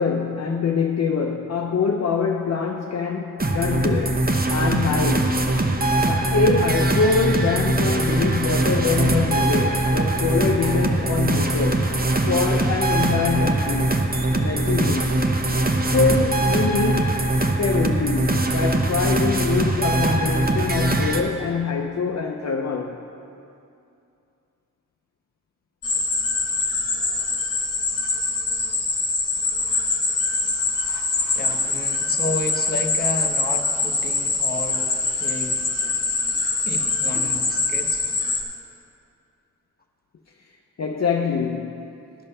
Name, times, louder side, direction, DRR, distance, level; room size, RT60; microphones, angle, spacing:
voice 1, 0.0-5.4 6.1-11.9 12.3-13.9 14.3-15.2 15.9-17.2 17.6-23.0 37.1-37.3 40.8-42.0, left 5 dB, 50° left, 0.6 m, -24 dB
sound 1, 3.4-21.2, right 2 dB, 25° right, 0.8 m, -22 dB
sound 2, 25.8-38.4, left 3 dB, 70° left, 1.1 m, -24 dB
voice 2, 31.3-35.6 36.7-38.0, left 2 dB, 30° left, 1.0 m, -32 dB
12.0 x 5.4 x 5.5 m
cardioid pair, 45°, 33 cm